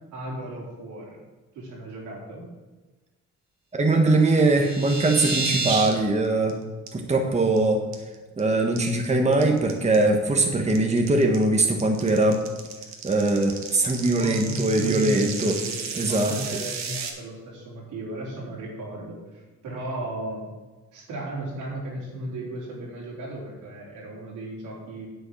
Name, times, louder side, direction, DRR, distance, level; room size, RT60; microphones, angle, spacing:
voice 1, 0.1-1.2 1.5-2.4 14.2-20.5 20.9-25.1, right 1 dB, 90° right, -4 dB, 3.8 m, -35 dB
voice 2, 3.7-6.6 6.9-7.8 8.4-12.4 13.0-15.6 16.0-16.3, right 2 dB, 20° right, 3 dB, 1.4 m, -21 dB
sound 1, 4.3-5.9 6.2-6.5 6.9-7.0 7.3-7.6 7.9-8.4 8.8-17.1, right 4 dB, 65° right, 1.7 m, -32 dB
8.5 x 7.9 x 6.3 m, 1.2 s
cardioid pair, 90°, 30 cm